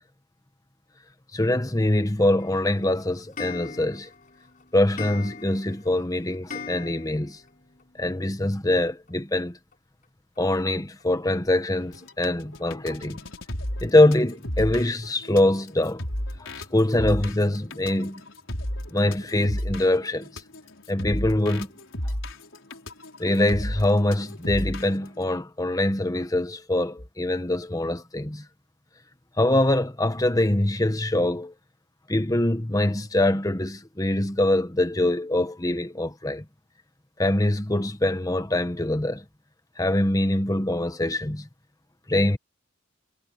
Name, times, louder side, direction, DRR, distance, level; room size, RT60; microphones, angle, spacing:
voice 1, 1.3-4.1 4.7-7.4 8.0-9.6 10.4-13.2 13.8-16.1 16.7-18.2 18.9-20.3 20.9-21.7 23.2-28.4 29.4-31.5 32.1-36.4 37.2-39.2 39.8-41.5 42.1-42.4, left 1 dB, 20° left, 1.3 m, -23 dB
Clock, 2.4-7.5 7.8-7.9 8.1-8.2 8.4-8.5 9.7-9.8 10.4-10.5 11.0-11.1 11.6-11.7 12.3-12.4 12.9-13.0, left 5 dB, 40° left, 6.8 m, -40 dB
sound 1, 11.8-25.1, left 1 dB, 75° left, 5.0 m, -33 dB
head